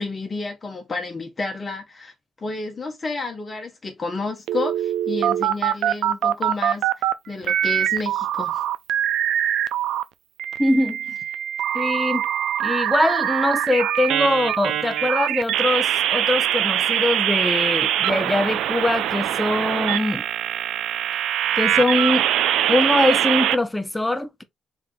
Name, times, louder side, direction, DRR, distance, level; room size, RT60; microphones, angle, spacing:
voice 1, 0.0-2.1 2.4-8.6, left 3 dB, 30° left, 0.9 m, -31 dB
sound 1, 4.5-7.1 7.4-10.0 10.4-23.6, right 11 dB, 85° right, 0.3 m, -23 dB
voice 2, 10.6-11.0 11.7-12.2 12.6-20.2 21.6-22.3 22.7-24.4, left 1 dB, 10° left, 0.6 m, -22 dB
3.6 x 2.6 x 3.7 m
cardioid pair, 90°, 0 cm